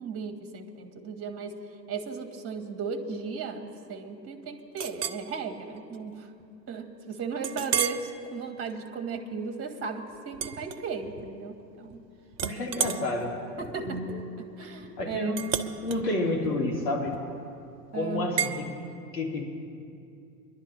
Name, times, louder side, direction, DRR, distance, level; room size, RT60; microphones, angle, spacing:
voice 1, 0.0-1.6 1.9-6.3 6.7-12.1 13.6-14.0 14.4-15.4 17.9-18.6, right 5 dB, 30° right, 5 dB, 1.6 m, -36 dB
Chink clink, 4.8-5.2 5.8-6.0 6.4-6.5 7.4-8.1 8.6-8.9 10.3-11.3 11.6-12.0 12.3-17.5 18.4-18.6, right 8 dB, 80° right, 0.9 m, -33 dB
voice 2, 12.4-13.4 13.8-14.1 15.0-15.5 15.8-17.1 17.9-18.7 19.1-19.4, left 2 dB, 65° left, 0 dB, 2.7 m, -29 dB
23.5 x 11.0 x 3.3 m, 2.6 s
hypercardioid pair, 90°, 50 cm